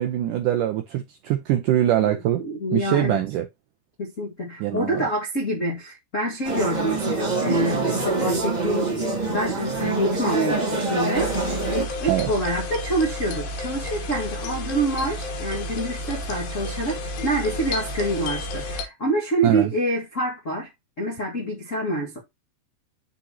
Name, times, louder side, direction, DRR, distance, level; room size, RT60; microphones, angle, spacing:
voice 1, 0.0-2.4 2.7-3.5 4.6-5.0 12.1-12.3 19.4-19.7, right 12 dB, 90° right, 1.8 m, -23 dB
voice 2, 2.0-3.2 4.0-20.7 21.0-22.2, right 1 dB, 85° left, 0.6 m, -27 dB
sound 1, 6.4-11.8, right 3 dB, 20° right, 1.1 m, -25 dB
sound 2, 11.1-18.8, left 1 dB, 70° left, 3.0 m, -31 dB
9.8 x 3.9 x 2.8 m
omnidirectional pair, 4.6 m